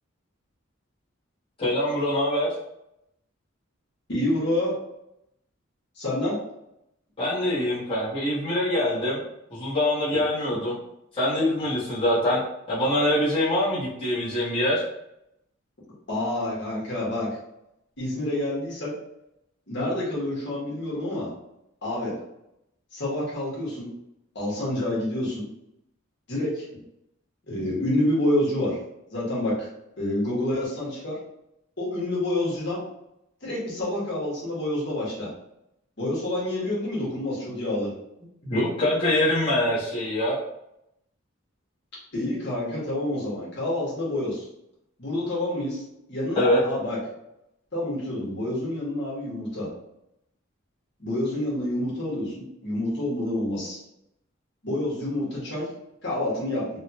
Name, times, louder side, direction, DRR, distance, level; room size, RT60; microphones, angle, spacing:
voice 1, 1.6-2.5 7.2-9.2 9.5-10.7 11.1-12.4 12.7-14.8 38.4-40.3 46.3-46.6, left 1 dB, 25° left, -10 dB, 1.1 m, -24 dB
voice 2, 4.1-4.7 5.9-6.4 16.1-17.3 18.0-18.9 19.7-21.3 21.8-22.1 22.9-23.9 24.3-25.4 26.3-26.7 27.5-28.8 29.1-29.7 30.0-31.2 31.8-32.8 33.4-35.3 36.0-37.9 42.1-44.5 45.0-45.8 46.1-47.0 47.7-49.7 51.0-53.8 54.6-55.7 56.0-56.7, left 1 dB, 60° left, -6 dB, 1.4 m, -28 dB
3.5 x 2.3 x 2.8 m, 0.82 s
head